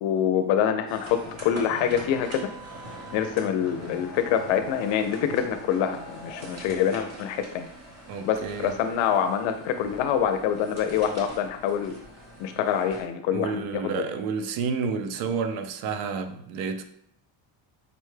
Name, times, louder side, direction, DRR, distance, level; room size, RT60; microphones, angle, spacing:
voice 1, 0.0-2.5 3.1-7.7 8.2-11.9 12.4-14.0, left 8 dB, 75° left, 7 dB, 0.5 m, -25 dB
sound 1, 0.9-13.0, right 1 dB, 35° right, 0.9 m, -43 dB
voice 2, 8.1-8.7 13.3-16.8, right 5 dB, 80° right, 8 dB, 0.6 m, -30 dB
5.2 x 2.2 x 3.2 m, 0.72 s
cardioid pair, 150°, 47 cm